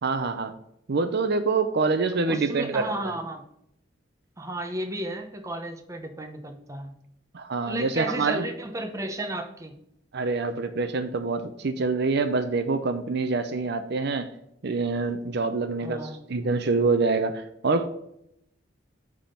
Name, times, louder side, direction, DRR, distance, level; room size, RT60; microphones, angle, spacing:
voice 1, 0.0-0.5 0.9-2.9 7.3-8.5 10.1-14.3 14.6-16.0 16.3-17.9, right 3 dB, 60° right, 9 dB, 0.6 m, -26 dB
voice 2, 2.2-3.4 4.4-6.9 7.7-9.8 15.8-16.3, right 1 dB, 15° right, 5 dB, 0.9 m, -33 dB
8.9 x 3.7 x 5.7 m, 0.76 s
head